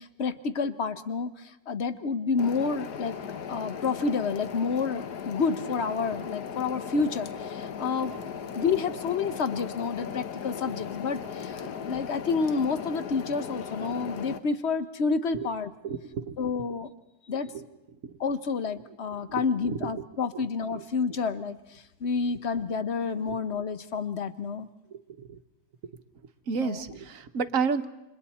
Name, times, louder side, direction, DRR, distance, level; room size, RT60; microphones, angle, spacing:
voice 1, 0.0-1.3 1.7-3.2 3.5-8.1 8.5-15.7 16.4-16.9 17.3-17.5 18.2-24.7 26.6-26.8, left 5 dB, 45° left, 12 dB, 0.9 m, -29 dB
sound 1, 2.4-14.4, left 7 dB, 60° left, 1.5 m, -37 dB
voice 2, 15.8-16.4 17.5-17.6 18.0-18.1 19.3-19.9 20.3-20.4 20.7-20.8 23.3-23.4 25.2-25.4 26.5-27.9, right 5 dB, 50° right, 9 dB, 1.2 m, -31 dB
30.0 x 27.5 x 4.3 m, 0.95 s
omnidirectional pair, 2.0 m